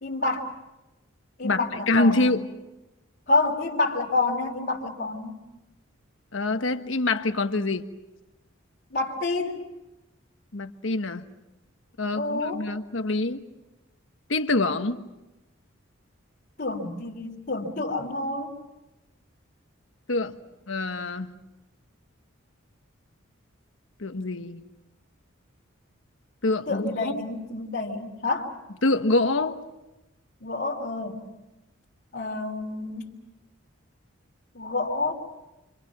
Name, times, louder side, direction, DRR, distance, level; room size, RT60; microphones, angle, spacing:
voice 1, 0.0-0.5 1.4-2.3 3.3-5.4 8.9-9.7 12.1-12.6 16.6-18.5 26.7-28.5 30.4-31.2 32.1-33.1 34.5-35.1, left 2 dB, 50° left, -7 dB, 3.1 m, -28 dB
voice 2, 1.9-2.4 6.3-7.9 10.5-11.2 12.0-13.4 14.3-15.0 20.1-20.3 20.7-21.3 24.0-24.6 26.4-27.2 28.8-29.6, left 2 dB, 70° left, 8 dB, 1.3 m, -25 dB
30.0 x 25.5 x 6.1 m, 1.0 s
head